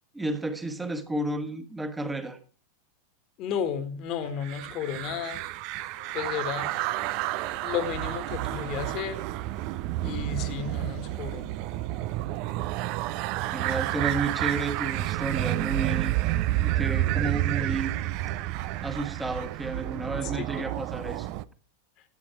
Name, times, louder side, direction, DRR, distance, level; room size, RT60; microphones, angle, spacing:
voice 1, 0.1-2.4 10.1-10.2 13.5-16.1 16.5-17.9 18.8-21.3, right 3 dB, 10° right, 1.4 m, -32 dB
voice 2, 3.4-5.4 6.1-6.7 7.6-9.2 10.0-11.5 20.2-20.5, left 8 dB, 40° left, 1.7 m, -33 dB
sound 1, 4.4-21.4, right 15 dB, 45° right, 0.5 m, -30 dB
sound 2, 6.0-18.5, right 2 dB, 85° right, 3.7 m, -54 dB
13.5 x 8.7 x 4.5 m
figure-of-eight pair, 90°, 0 cm